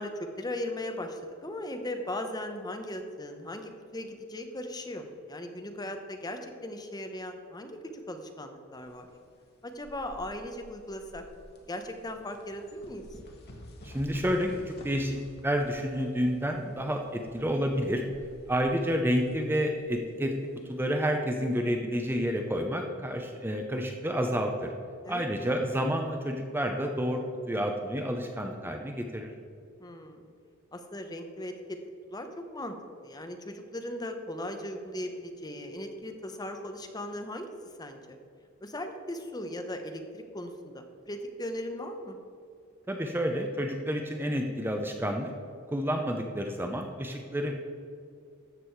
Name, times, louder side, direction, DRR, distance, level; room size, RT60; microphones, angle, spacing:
voice 1, 0.0-7.8 8.1-9.1 9.6-11.2 11.7-13.0 25.0-25.3 29.8-30.3 30.7-31.8 32.1-32.7 33.0-37.5 37.8-38.2 38.6-42.2, left 1 dB, 20° left, 5 dB, 0.8 m, -38 dB
sound 1, 8.7-20.8, left 1 dB, 50° left, 1.7 m, -51 dB
voice 2, 13.8-15.2 15.4-18.0 18.5-20.3 20.7-24.7 25.1-29.3 42.9-45.3 45.7-47.5, equal, 10° right, 3 dB, 0.6 m, -29 dB
13.0 x 7.5 x 4.6 m, 2.3 s
head